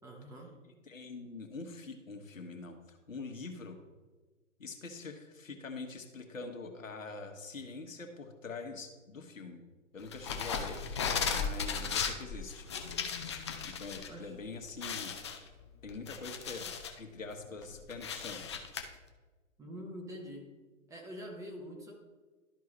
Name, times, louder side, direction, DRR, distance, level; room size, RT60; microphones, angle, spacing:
voice 1, 0.0-0.5 14.1-14.4 19.6-20.5 20.9-21.9, equal, 10° right, 0 dB, 0.7 m, -45 dB
voice 2, 0.9-3.8 4.6-9.6 9.9-10.8 11.3-12.7 13.6-15.1 15.8-16.7 17.0-18.4, left 3 dB, 80° left, 4 dB, 1.3 m, -44 dB
sound 1, 10.1-14.1 14.4-14.5 14.8-17.0 17.4-18.8, left 6 dB, 25° left, 0.4 m, -36 dB
12.5 x 4.7 x 3.1 m, 1.3 s
figure-of-eight pair, 125°, 39 cm